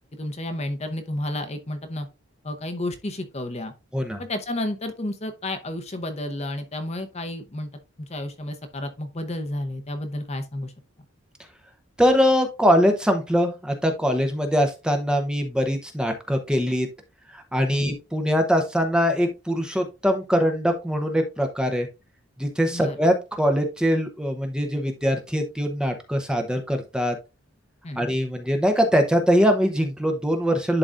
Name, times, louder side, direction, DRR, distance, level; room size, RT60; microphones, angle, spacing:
voice 1, 0.1-2.1 2.4-3.7 4.2-7.7 8.1-10.7 17.7-17.9 22.7-23.0 27.8-28.0, left 1 dB, 30° left, 0.8 m, -31 dB
voice 2, 12.0-16.9 17.3-21.9 22.4-27.1 28.0-30.8, equal, 5° right, 0.7 m, -22 dB
11.0 x 3.9 x 2.5 m
head